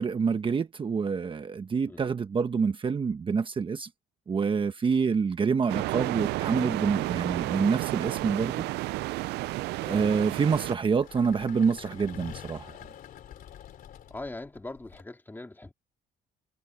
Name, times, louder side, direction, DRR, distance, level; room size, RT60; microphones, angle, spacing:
voice 1, 0.0-3.9 4.3-8.6 9.8-12.7, right 5 dB, 30° right, 1.2 m, -27 dB
sound 1, 5.2-5.6 6.7-15.0, left 10 dB, 55° left, 3.0 m, -49 dB
sound 2, 5.7-10.8, right 19 dB, 80° right, 0.4 m, -31 dB
voice 2, 9.8-10.4 14.1-15.7, left 2 dB, 10° left, 3.2 m, -42 dB
cardioid pair, 110°, 17 cm